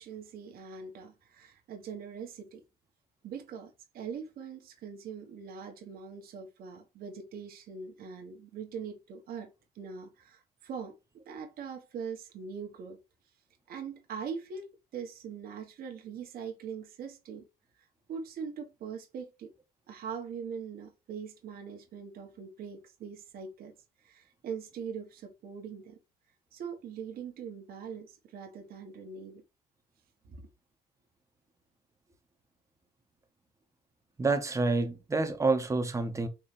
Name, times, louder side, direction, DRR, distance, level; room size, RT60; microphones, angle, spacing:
voice 1, 0.0-2.6 3.2-9.5 9.7-10.9 11.2-13.0 13.7-14.7 14.9-17.5 18.1-19.5 19.9-23.7 24.0-26.0 26.5-29.4 30.2-30.5, right 6 dB, 60° right, 1.2 m, -42 dB
voice 2, 34.2-36.3, right 3 dB, 20° right, 1.0 m, -28 dB
4.3 x 3.2 x 3.2 m
cardioid pair, 110°, 17 cm